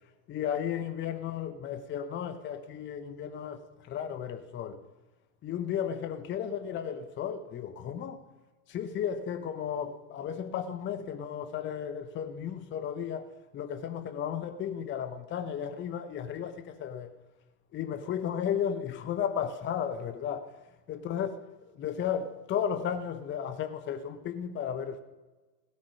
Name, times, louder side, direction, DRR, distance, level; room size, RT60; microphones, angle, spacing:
voice 1, 0.3-4.8 5.4-8.2 8.7-13.3 13.5-17.1 17.7-20.5 20.9-21.4 21.8-25.0, left 8 dB, 25° left, 1.1 m, -34 dB
16.5 x 13.0 x 6.2 m
figure-of-eight pair, 95°, 48 cm